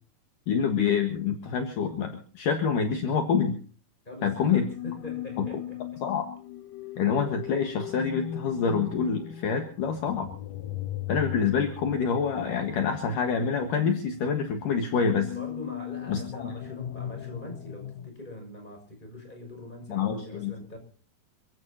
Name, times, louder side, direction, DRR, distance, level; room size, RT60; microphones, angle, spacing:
voice 1, 0.5-3.6 4.2-4.6 5.4-5.5 6.0-6.3 7.0-10.3 11.1-15.3 16.1-16.5 19.9-20.5, left 6 dB, 65° left, 2.9 m, -26 dB
voice 2, 4.0-5.8 15.3-20.8, left 2 dB, 10° left, 6.1 m, -42 dB
sound 1, 4.3-18.1, left 13 dB, 85° left, 1.5 m, -39 dB
27.5 x 16.0 x 2.9 m
omnidirectional pair, 4.6 m